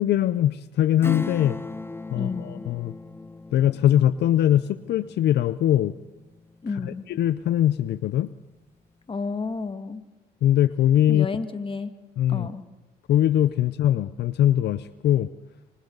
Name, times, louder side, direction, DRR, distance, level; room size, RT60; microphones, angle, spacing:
voice 1, 0.0-1.6 2.1-2.9 3.5-5.9 6.8-8.3 10.4-11.3 12.2-12.5 13.1-15.3, left 11 dB, 70° left, 14 dB, 0.7 m, -21 dB
Acoustic guitar / Strum, 1.0-7.2 7.6-7.7, left 2 dB, 15° left, 1.2 m, -38 dB
voice 2, 2.1-2.7 6.6-7.0 9.1-10.0 11.1-11.9 12.3-12.6, left 4 dB, 30° left, 9 dB, 2.0 m, -31 dB
26.0 x 25.0 x 4.0 m, 1.0 s
supercardioid pair, 80°, 18 cm